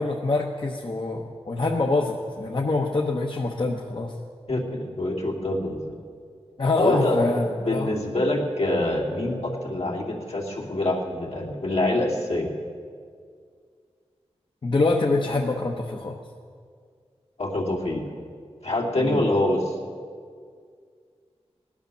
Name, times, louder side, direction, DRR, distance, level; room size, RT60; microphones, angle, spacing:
voice 1, 0.0-4.1 6.6-7.9 14.6-16.2 19.0-19.2, left 3 dB, 45° left, 0 dB, 1.1 m, -25 dB
voice 2, 4.5-6.0 6.8-7.2 7.5-12.5 17.4-18.0 18.6-19.8, left 1 dB, 70° left, -2 dB, 2.7 m, -25 dB
17.5 x 11.0 x 7.0 m, 2.1 s
wide cardioid pair, 80°, 11 cm